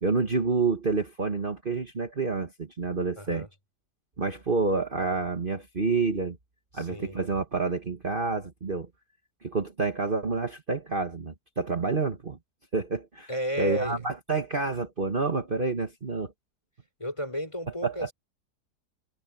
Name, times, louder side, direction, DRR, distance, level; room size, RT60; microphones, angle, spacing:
voice 1, 0.0-3.5 4.2-6.4 6.7-8.9 9.4-12.4 12.7-13.3 13.6-16.3 17.8-18.1, right 4 dB, 30° right, 1.8 m, -28 dB
voice 2, 3.2-3.5 6.7-7.2 13.3-14.0 17.0-18.1, equal, 15° left, 4.1 m, -33 dB
omnidirectional pair, 1.8 m